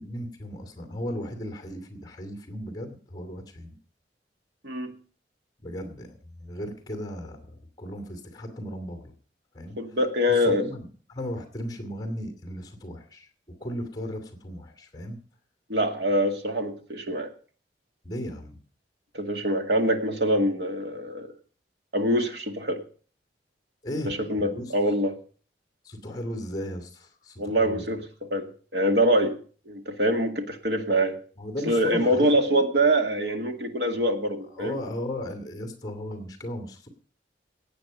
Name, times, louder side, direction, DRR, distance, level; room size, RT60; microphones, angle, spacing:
voice 1, 0.0-3.7 5.6-9.1 9.5-9.8 10.3-13.3 13.6-15.2 18.0-18.6 23.8-24.7 25.8-27.8 31.4-32.4 34.5-36.9, equal, 25° left, 5 dB, 2.5 m, -36 dB
voice 2, 4.6-4.9 9.8-10.7 15.7-17.3 19.1-21.3 21.9-22.8 24.0-25.2 27.4-28.0 28.3-29.4 29.7-31.2 31.7-34.8, equal, 70° right, 5 dB, 2.1 m, -24 dB
18.0 x 8.6 x 5.4 m, 0.41 s
head